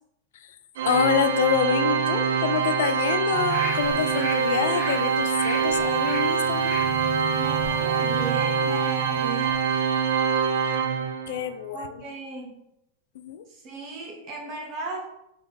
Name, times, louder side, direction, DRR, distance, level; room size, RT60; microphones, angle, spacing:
voice 1, 0.8-6.8 11.3-12.0 13.1-13.4, left 8 dB, 65° left, 11 dB, 0.3 m, -27 dB
Organ, 0.8-11.5, right 6 dB, 70° right, 0.3 m, -24 dB
sound 1, 3.3-9.8 10.1-10.3, right 1 dB, 15° left, 1.1 m, -36 dB
voice 2, 7.3-9.8 11.7-12.6 13.5-15.1, right 3 dB, 25° right, -1 dB, 0.8 m, -36 dB
4.1 x 3.5 x 3.3 m, 0.82 s
supercardioid pair, 180°, 0 cm